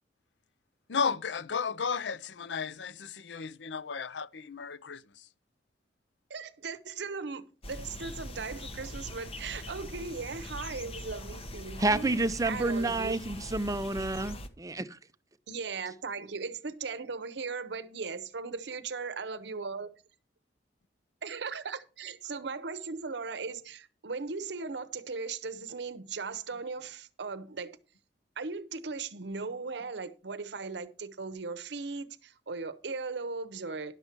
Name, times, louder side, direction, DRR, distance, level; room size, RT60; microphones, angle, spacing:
voice 1, 0.9-5.0, left 5 dB, 75° left, 0.5 m, -33 dB
voice 2, 6.3-12.1 12.5-13.1 15.5-19.9 21.2-27.8 28.4-34.0, right 4 dB, 70° right, 0.8 m, -38 dB
sound 1, 7.6-14.5, left 1 dB, 35° left, 0.9 m, -42 dB
voice 3, 11.8-14.9, right 2 dB, 20° right, 0.5 m, -29 dB
11.0 x 7.1 x 4.5 m
head